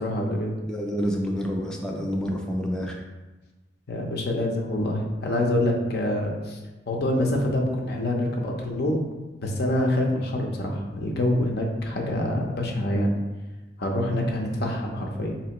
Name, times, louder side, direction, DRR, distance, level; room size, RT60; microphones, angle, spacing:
voice 1, 0.0-0.5 3.9-6.6 6.9-9.0 9.4-13.2 13.8-15.4, left 1 dB, 65° left, 0 dB, 0.7 m, -26 dB
voice 2, 0.7-3.0, equal, 5° left, -1 dB, 0.3 m, -28 dB
4.2 x 2.9 x 2.9 m, 1.2 s
head